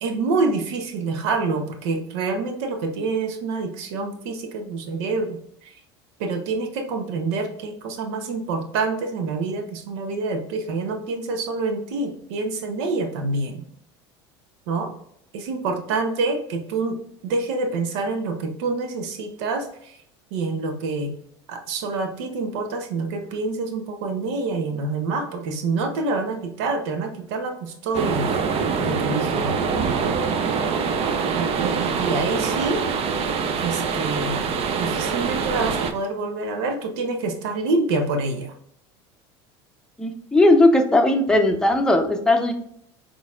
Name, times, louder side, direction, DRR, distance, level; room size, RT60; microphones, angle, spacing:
voice 1, 0.0-5.7 6.2-13.6 14.7-14.9 15.3-20.0 20.3-21.1 21.5-28.3 28.8-29.6 31.3-32.9 33.6-34.5 34.8-38.5, right 3 dB, 75° right, 5 dB, 0.9 m, -27 dB
sound 1, 27.9-35.9, right 5 dB, 45° right, 0.6 m, -24 dB
voice 2, 40.0-42.5, left 2 dB, 5° left, 3 dB, 0.7 m, -17 dB
4.7 x 3.9 x 2.5 m, 0.68 s
hypercardioid pair, 85°, 14 cm